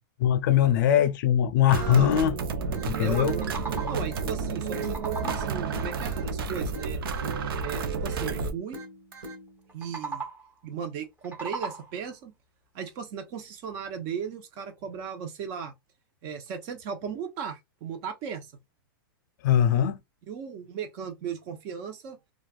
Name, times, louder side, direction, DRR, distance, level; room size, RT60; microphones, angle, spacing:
voice 1, 0.2-2.4 2.9-3.3 19.4-20.0, left 10 dB, 55° left, 0.4 m, -21 dB
voice 2, 1.7-2.1 3.0-3.5 3.9-7.0 7.6-8.8 9.7-10.2 10.6-12.3 12.7-15.7 16.2-18.5 20.3-22.2, right 7 dB, 40° right, 0.8 m, -36 dB
sound 1, 1.7-9.7, left 1 dB, 60° right, 1.7 m, -44 dB
sound 2, 1.7-8.5, right 5 dB, 80° right, 0.6 m, -31 dB
sound 3, 3.3-4.2 4.6-5.7 9.7-10.6 11.0-12.1, right 4 dB, 15° right, 0.9 m, -38 dB
3.1 x 2.4 x 2.3 m
supercardioid pair, 145°, 12 cm